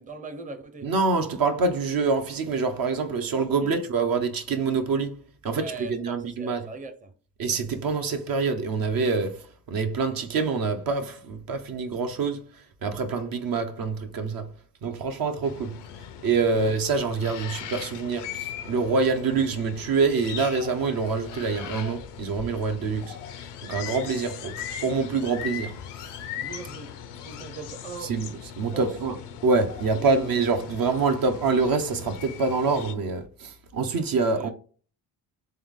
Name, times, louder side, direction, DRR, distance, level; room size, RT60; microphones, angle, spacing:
voice 1, 0.0-0.9 3.6-3.8 5.5-7.1 16.5-16.6 26.3-26.9 27.2-28.1 28.7-29.0 30.0-30.1 34.4-34.5, right 3 dB, 20° right, 0.6 m, -40 dB
voice 2, 0.8-6.7 7.4-9.4 9.7-12.4 12.8-14.5 14.8-15.7 16.2-23.1 23.6-25.7 28.0-34.5, right 4 dB, 60° right, 0.7 m, -26 dB
sound 1, 15.4-32.9, left 9 dB, 90° left, 0.7 m, -39 dB
3.5 x 3.4 x 3.6 m
cardioid pair, 80°, 40 cm